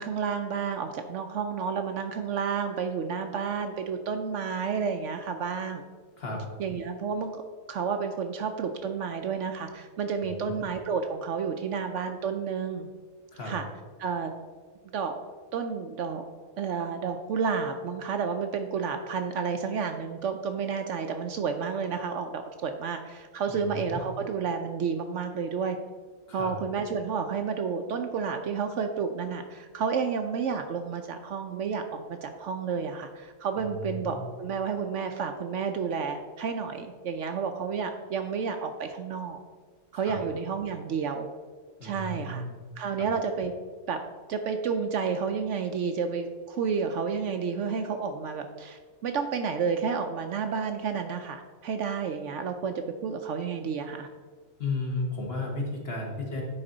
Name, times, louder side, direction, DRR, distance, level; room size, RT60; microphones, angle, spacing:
voice 1, 0.0-5.8 6.6-7.4 7.7-12.9 13.4-13.6 14.0-14.3 14.9-15.1 15.5-16.2 16.6-25.8 26.3-39.4 39.9-41.3 41.8-42.4 42.8-43.5 43.9-44.0 44.3-54.1, right 6 dB, 65° right, 6 dB, 0.8 m, -31 dB
voice 2, 10.2-10.6 13.3-13.6 23.5-24.0 26.3-26.5 33.6-34.2 39.9-40.2 41.8-42.5 43.0-43.1 54.6-56.4, left 2 dB, 45° left, 0 dB, 1.5 m, -34 dB
10.0 x 4.3 x 3.9 m, 1.5 s
omnidirectional pair, 1.5 m